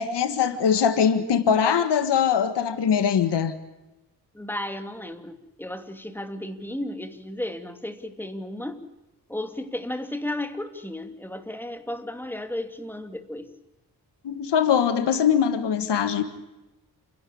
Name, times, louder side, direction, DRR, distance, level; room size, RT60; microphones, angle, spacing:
voice 1, 0.0-3.5 14.2-16.2, left 7 dB, 85° left, 11 dB, 1.8 m, -22 dB
voice 2, 4.3-8.9 9.3-13.5, left 1 dB, 5° left, 7 dB, 2.8 m, -34 dB
29.5 x 12.0 x 8.6 m, 1.0 s
cardioid pair, 55°, 40 cm